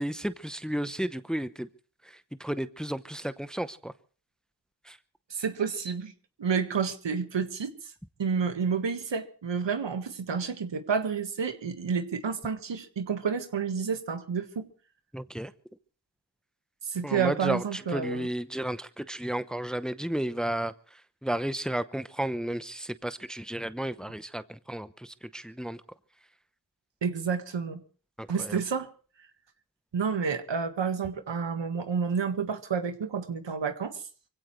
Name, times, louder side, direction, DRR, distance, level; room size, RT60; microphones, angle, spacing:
voice 1, 0.0-1.7 2.0-3.9 4.8-5.0 15.1-15.5 17.0-25.8 28.2-28.6, right 1 dB, ahead, 13 dB, 0.9 m, -33 dB
voice 2, 5.3-6.1 6.4-7.7 8.2-14.7 16.8-18.3 27.0-27.8 28.3-28.9 29.9-34.0, right 6 dB, 80° right, 8 dB, 1.8 m, -30 dB
24.0 x 16.5 x 3.3 m, 0.40 s
cardioid pair, 50°, 43 cm